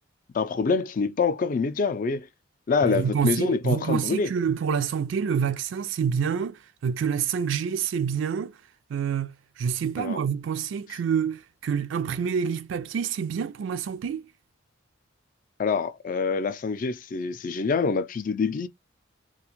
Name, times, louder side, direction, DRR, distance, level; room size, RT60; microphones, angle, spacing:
voice 1, 0.3-2.3 2.7-4.3 10.0-10.2 15.6-18.7, left 4 dB, 45° left, 0.4 m, -26 dB
voice 2, 2.9-8.5 8.9-14.3, right 7 dB, 75° right, 0.3 m, -27 dB
2.4 x 2.2 x 3.0 m
head